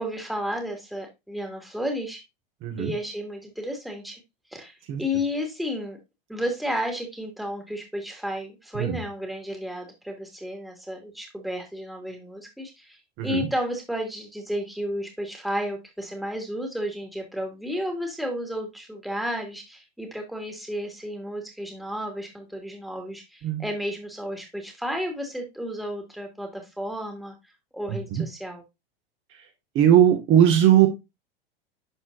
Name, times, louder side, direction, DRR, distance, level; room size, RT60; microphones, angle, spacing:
voice 1, 0.0-2.2 2.8-4.2 4.5-6.0 6.3-27.4 27.7-28.6, equal, ahead, 2 dB, 2.3 m, -32 dB
voice 2, 2.6-2.9 4.9-5.0 8.8-9.0 13.2-13.5 23.4-23.6 27.9-28.2 29.8-30.9, right 10 dB, 40° right, 2 dB, 1.8 m, -19 dB
11.5 x 4.3 x 2.6 m, 0.22 s
hypercardioid pair, 105°, 30 cm